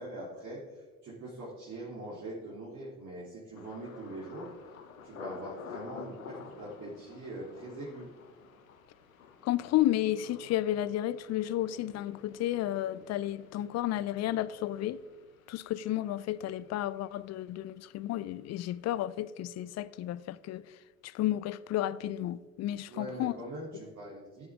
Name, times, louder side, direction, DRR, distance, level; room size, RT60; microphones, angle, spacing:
voice 1, 0.0-4.5 5.0-8.1 22.9-24.5, right 1 dB, 45° right, 3.0 m, -42 dB
Thunder, 3.6-19.3 19.6-20.2 20.6-20.9, left 6 dB, 85° left, 0.9 m, -51 dB
voice 2, 9.4-15.0 15.5-20.8 21.0-23.3, left 13 dB, 40° left, 0.5 m, -32 dB
15.0 x 6.9 x 3.6 m
figure-of-eight pair, 55°, 40 cm